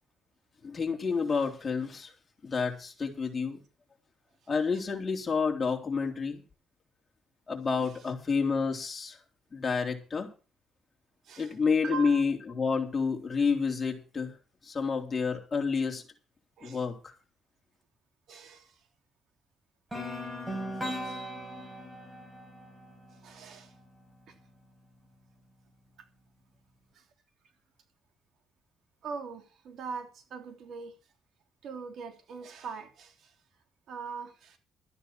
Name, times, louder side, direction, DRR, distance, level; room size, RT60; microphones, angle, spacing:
voice 1, 0.6-2.1 2.4-3.6 4.5-6.4 7.5-9.2 9.5-10.3 11.4-14.3 14.6-16.0 16.6-17.1, left 5 dB, 30° left, 3.7 m, -29 dB
voice 2, 11.2-11.6 11.8-12.2 16.6-16.8 18.3-18.8 21.0-21.2 23.2-23.7 26.9-27.0 29.0-30.9 31.6-33.3 33.9-34.6, right 5 dB, 70° right, 3.3 m, -41 dB
sound 1, 19.9-23.9, equal, 15° right, 6.9 m, -38 dB
13.5 x 10.0 x 6.0 m
cardioid pair, 90°, 0 cm